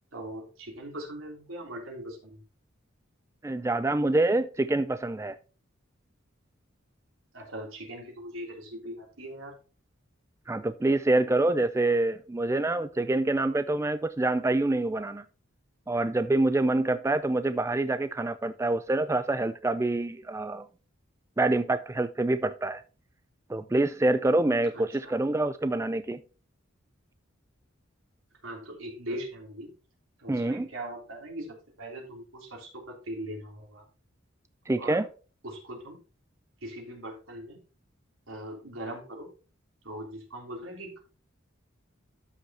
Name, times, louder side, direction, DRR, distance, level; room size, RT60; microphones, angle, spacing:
voice 1, 0.1-2.4 7.3-9.5 24.7-25.2 28.4-29.7 30.2-33.8 34.8-35.1 35.4-36.0 36.6-37.6 38.3-39.3 39.8-41.0, right 1 dB, 85° right, 3.3 m, -40 dB
voice 2, 3.4-5.4 10.5-15.2 15.9-20.6 21.4-22.8 23.5-26.2 30.3-30.7 34.7-35.1, right 2 dB, 15° right, 0.3 m, -26 dB
13.0 x 5.8 x 2.8 m
head